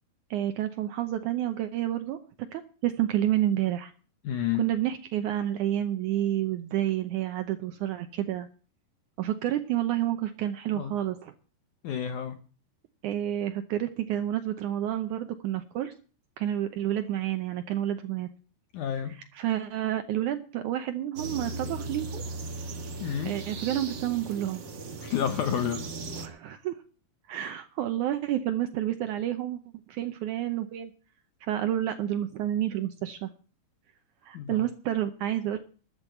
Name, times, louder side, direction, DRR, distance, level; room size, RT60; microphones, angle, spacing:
voice 1, 0.3-3.9 4.5-8.5 9.2-11.3 13.0-15.9 16.4-18.3 19.1-22.2 23.2-24.6 26.1-26.8 27.3-29.6 29.9-30.9 31.4-33.3 34.2-35.6, right 12 dB, 85° right, 8 dB, 1.7 m, -29 dB
voice 2, 4.2-4.6 10.7-10.9 11.8-12.4 18.7-19.2 23.0-23.3 25.0-25.8 34.3-34.7, left 9 dB, 75° left, 9 dB, 1.8 m, -30 dB
sound 1, 21.2-26.3, right 3 dB, 60° right, 1.1 m, -37 dB
13.0 x 8.8 x 7.9 m, 0.39 s
omnidirectional pair, 4.6 m